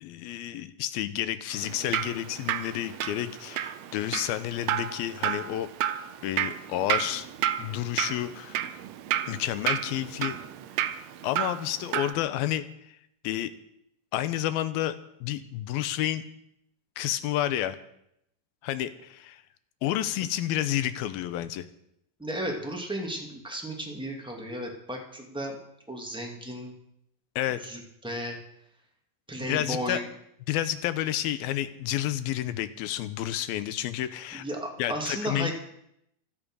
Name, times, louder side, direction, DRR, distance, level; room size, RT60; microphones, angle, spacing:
voice 1, 0.0-5.7 6.2-7.3 7.6-8.6 9.3-10.4 11.2-12.7 13.2-13.5 14.1-16.2 17.0-17.8 18.6-19.4 19.8-21.7 27.4-27.6 29.5-30.0 30.5-34.4 34.8-35.5, left 13 dB, 85° left, 13 dB, 2.8 m, -30 dB
Drip, 1.5-12.1, right 11 dB, 90° right, 1.5 m, -32 dB
voice 2, 22.2-25.6 25.9-26.7 27.5-28.4 29.3-30.1 34.3-35.5, equal, ahead, 0 dB, 1.8 m, -34 dB
16.0 x 12.5 x 6.4 m, 0.76 s
omnidirectional pair, 4.2 m